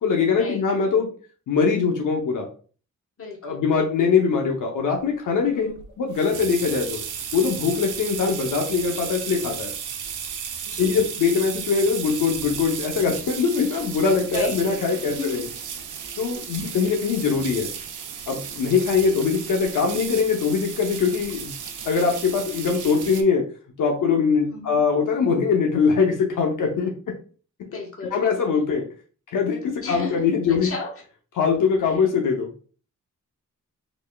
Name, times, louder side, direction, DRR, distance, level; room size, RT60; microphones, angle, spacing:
voice 1, 0.0-1.1 1.5-2.5 3.4-5.7 6.0-7.0 7.3-9.7 10.8-15.4 16.2-17.7 18.3-21.5 21.9-23.4 23.8-26.9 28.1-28.8 29.3-30.7 31.4-32.5, left 5 dB, 90° left, 1 dB, 0.8 m, -22 dB
voice 2, 3.2-3.7 5.4-5.8 10.7-11.1 14.3-14.6 14.9-15.5 16.5-16.8 21.6-21.7 24.4-24.8 27.7-28.2 29.8-30.9 31.8-32.0, left 3 dB, 45° left, 1 dB, 1.1 m, -35 dB
sound 1, 5.8-23.2, right 7 dB, 75° right, 0.6 m, -34 dB
4.1 x 3.2 x 2.3 m, 0.40 s
cardioid pair, 90°, 31 cm